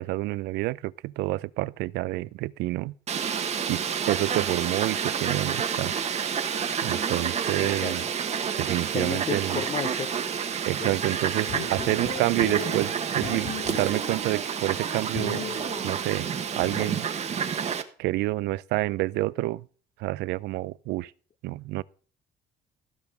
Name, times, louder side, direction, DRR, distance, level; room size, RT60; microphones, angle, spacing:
voice 1, 0.0-2.9 3.7-5.9 6.8-8.0 8.6-9.6 10.7-15.5 15.8-16.3 16.6-17.1 18.0-19.6 20.0-21.1 21.4-21.8, right 18 dB, 85° right, 0.5 m, -28 dB
Fowl, 3.1-17.8, right 7 dB, 40° right, 1.2 m, -29 dB
voice 2, 7.6-8.1 8.9-10.1 10.8-10.9 11.8-12.3, left 7 dB, 35° left, 0.7 m, -34 dB
sound 1, 11.5-14.3 15.1-17.1, left 5 dB, 60° left, 7.6 m, -37 dB
14.5 x 5.3 x 6.4 m
cardioid pair, 110°, 17 cm